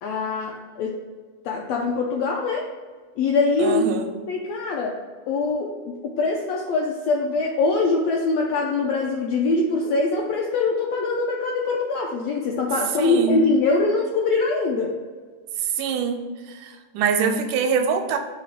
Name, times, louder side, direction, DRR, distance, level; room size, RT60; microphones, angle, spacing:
voice 1, 0.0-1.0 1.4-2.7 3.2-3.8 4.3-5.0 5.3-15.0, left 3 dB, 80° left, 0 dB, 1.5 m, -23 dB
voice 2, 3.6-4.1 13.0-13.4 15.8-16.2 16.5-18.2, right 6 dB, 85° right, 5 dB, 2.1 m, -24 dB
7.0 x 3.0 x 5.7 m, 1.5 s
omnidirectional pair, 3.7 m